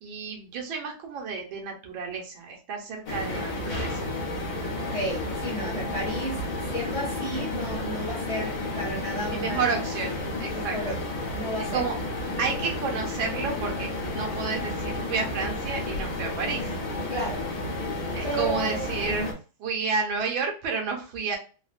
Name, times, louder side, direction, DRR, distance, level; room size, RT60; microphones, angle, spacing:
voice 1, 0.0-4.1 9.2-10.9 11.7-12.0 12.4-16.7 18.1-19.3 19.6-21.4, right 5 dB, 85° right, 1.6 m, -31 dB
sound 1, 3.1-19.3, left 2 dB, 60° left, 1.3 m, -31 dB
voice 2, 4.7-9.7 10.5-11.0 11.3-11.8 17.1-17.5 18.2-18.9, equal, 20° left, 1.0 m, -33 dB
3.7 x 2.1 x 2.4 m
omnidirectional pair, 2.1 m